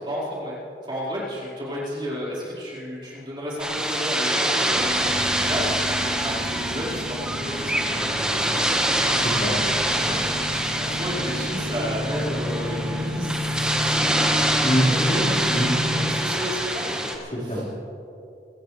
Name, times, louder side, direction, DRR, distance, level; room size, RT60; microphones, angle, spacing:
voice 1, 0.0-5.7 6.2-6.3 6.7-8.0 10.6-14.1 14.6-15.4 16.0-17.1 17.4-17.7, equal, 30° right, -8 dB, 4.8 m, -32 dB
sound 1, 3.6-17.2, right 1 dB, 5° right, 1.4 m, -25 dB
sound 2, 4.7-16.2, left 1 dB, 90° right, 2.6 m, -31 dB
voice 2, 9.1-9.5 9.9-10.2 14.6-16.1 17.3-17.6, equal, 40° left, -7 dB, 4.5 m, -25 dB
24.5 x 15.0 x 3.3 m, 2.7 s
head